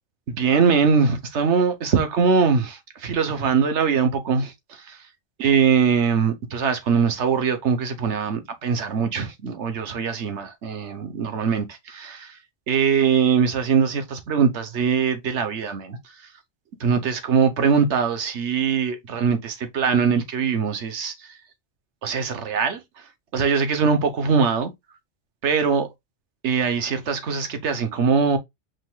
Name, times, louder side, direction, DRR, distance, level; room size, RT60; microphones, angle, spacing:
voice 1, 0.3-5.0 5.4-12.4 12.7-16.0 16.8-21.3 22.0-22.8 23.3-24.7 25.4-25.9 26.4-28.4, right 6 dB, 90° right, 1.3 m, -22 dB
5.3 x 3.8 x 2.2 m
omnidirectional pair, 1.2 m